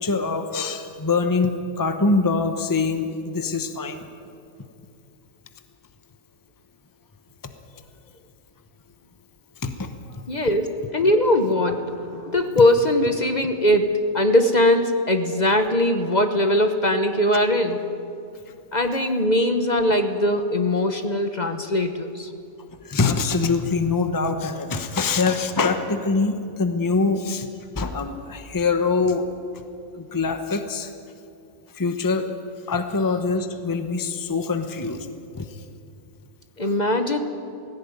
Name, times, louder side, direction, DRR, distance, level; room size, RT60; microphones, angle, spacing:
voice 1, 0.0-4.0 9.6-10.2 22.8-27.5 27.8-29.3 29.9-30.9 31.7-32.2 32.7-35.1 35.3-35.5 36.6-36.7, left 4 dB, 20° left, 7 dB, 1.0 m, -24 dB
voice 2, 10.3-17.8 18.7-22.3 36.6-37.2, left 1 dB, 40° left, 7 dB, 1.2 m, -21 dB
18.0 x 16.5 x 9.5 m, 2.5 s
omnidirectional pair, 1.3 m